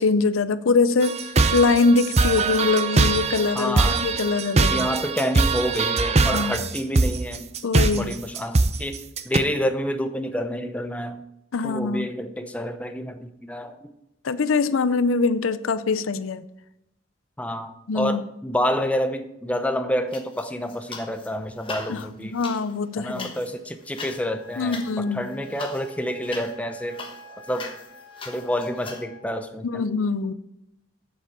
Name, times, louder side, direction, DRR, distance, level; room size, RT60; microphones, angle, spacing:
voice 1, 0.0-4.9 6.3-6.6 7.6-8.2 11.5-12.1 14.2-16.4 17.9-18.2 21.9-23.3 24.6-25.3 29.6-30.3, left 4 dB, 80° left, 13 dB, 0.5 m, -23 dB
sound 1, 1.0-9.4, right 3 dB, 30° right, 0.5 m, -22 dB
voice 2, 3.5-4.1 4.7-7.5 7.9-9.0 9.2-11.2 11.6-13.9 17.4-22.4 23.0-27.0 27.5-27.7 28.3-29.8, equal, 5° left, 7 dB, 0.7 m, -28 dB
sound 2, 20.1-21.3 21.6-29.0, left 4 dB, 25° left, 1.2 m, -40 dB
Wind instrument woodwind instrument, 23.9-29.3, left 2 dB, 65° left, 1.5 m, -47 dB
8.1 x 7.1 x 7.3 m, 0.83 s
head